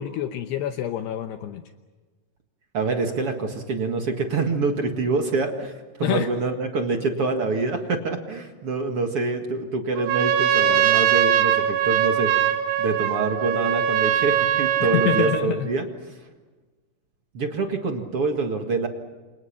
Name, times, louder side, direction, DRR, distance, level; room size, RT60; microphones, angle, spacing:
voice 1, 0.0-1.6 6.0-6.3 14.8-15.7, left 10 dB, 75° left, 7 dB, 2.8 m, -26 dB
voice 2, 2.7-5.7 6.0-12.3 12.8-15.9 17.3-18.9, right 3 dB, 50° right, 4 dB, 1.7 m, -26 dB
Trumpet, 10.0-15.5, right 10 dB, 85° right, 4.0 m, -21 dB
30.0 x 27.0 x 6.0 m, 1.3 s
omnidirectional pair, 5.2 m